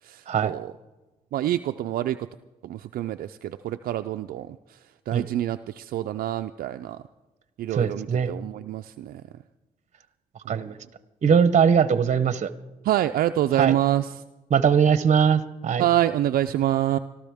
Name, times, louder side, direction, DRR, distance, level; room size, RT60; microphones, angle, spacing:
voice 1, 1.3-2.2 2.7-4.5 5.1-7.0 7.6-9.2 10.5-10.6 12.9-14.0 15.8-17.0, right 12 dB, 80° right, 8 dB, 0.4 m, -26 dB
voice 2, 7.7-8.3 10.5-10.8 11.2-12.5 13.5-13.7 14.5-15.9, right 7 dB, 50° right, 13 dB, 0.9 m, -21 dB
24.5 x 13.0 x 3.5 m, 1.1 s
cardioid pair, 65°, 15 cm